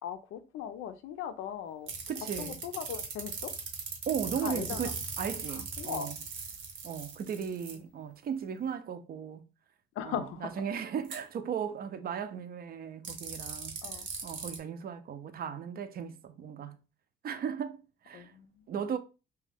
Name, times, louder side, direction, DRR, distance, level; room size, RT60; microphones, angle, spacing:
voice 1, 0.0-1.9 2.4-3.5 4.4-4.8 5.5-6.1 10.0-10.5 13.8-14.1 18.1-18.6, left 9 dB, 85° left, 0.4 m, -39 dB
sound 1, 1.9-7.7 11.0-11.2 13.0-14.6, right 5 dB, 75° right, 0.9 m, -39 dB
voice 2, 2.1-2.6 4.1-6.2 6.8-9.5 10.0-13.8 14.2-16.8 17.2-18.3 18.7-19.0, right 7 dB, 50° right, 0.4 m, -36 dB
2.5 x 2.2 x 3.3 m
cardioid pair, 90°, 20 cm